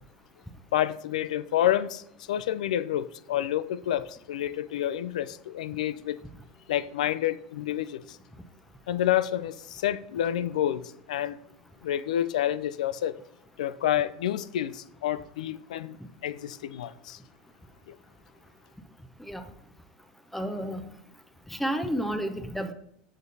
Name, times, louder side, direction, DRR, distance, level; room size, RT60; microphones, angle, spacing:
voice 1, 0.7-2.0 2.3-6.2 6.7-8.2 8.9-11.4 11.8-13.2 13.6-17.2, left 11 dB, 75° left, 0.4 m, -29 dB
voice 2, 20.3-20.9 21.5-22.7, equal, 5° left, 0.7 m, -31 dB
13.0 x 5.2 x 2.7 m
hypercardioid pair, 80°, 4 cm